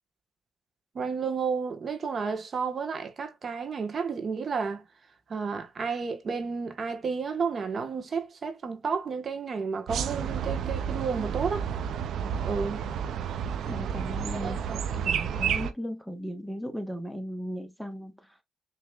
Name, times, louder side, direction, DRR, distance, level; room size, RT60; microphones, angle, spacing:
voice 1, 0.9-4.8 5.3-11.7 12.4-12.8 14.3-14.8, right 5 dB, 45° right, 1.3 m, -31 dB
sound 1, 9.9-15.7, right 8 dB, 70° right, 0.6 m, -31 dB
voice 2, 13.7-14.6 14.9-18.1, equal, ahead, 1.1 m, -36 dB
6.2 x 3.0 x 2.4 m
cardioid pair, 90°, 0 cm